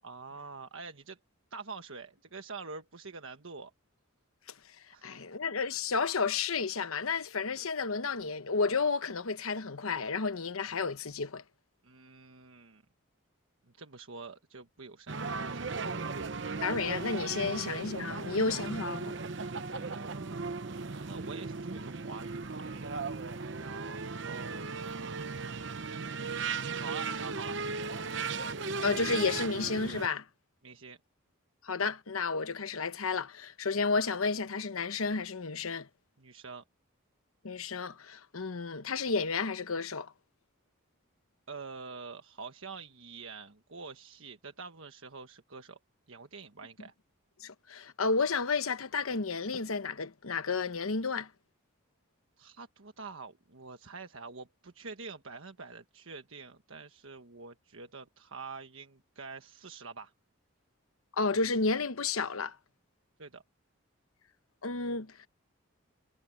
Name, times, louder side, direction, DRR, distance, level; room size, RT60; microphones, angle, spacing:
voice 1, 0.0-1.2 1.5-3.7 4.9-5.4 11.8-12.8 13.7-16.2 18.1-18.6 19.8-22.7 23.6-25.9 26.7-27.6 30.6-31.0 36.2-36.6 41.5-45.8 46.1-46.9 52.4-60.1 63.2-63.4, right 4 dB, 70° right, 1.3 m, -46 dB
voice 2, 5.0-11.4 16.6-19.1 28.8-30.2 31.6-35.9 37.4-40.1 47.4-51.3 61.2-62.6 64.6-65.3, left 4 dB, 80° left, 1.0 m, -32 dB
sound 1, 15.1-30.1, right 4 dB, 55° right, 0.9 m, -37 dB
head